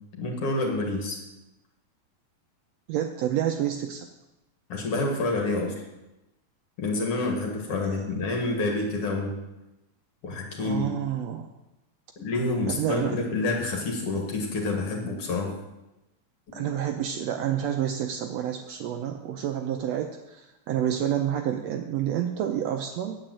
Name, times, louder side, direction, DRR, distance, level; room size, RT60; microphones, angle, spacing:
voice 1, 0.1-1.2 4.7-5.7 6.8-9.4 10.2-10.9 12.2-15.5 16.5-16.7, left 2 dB, 55° left, 1 dB, 2.6 m, -28 dB
voice 2, 2.9-4.1 7.8-8.1 10.6-11.5 12.8-13.2 16.5-23.2, right 10 dB, 75° right, 5 dB, 1.6 m, -29 dB
8.8 x 8.1 x 7.6 m, 0.98 s
omnidirectional pair, 3.5 m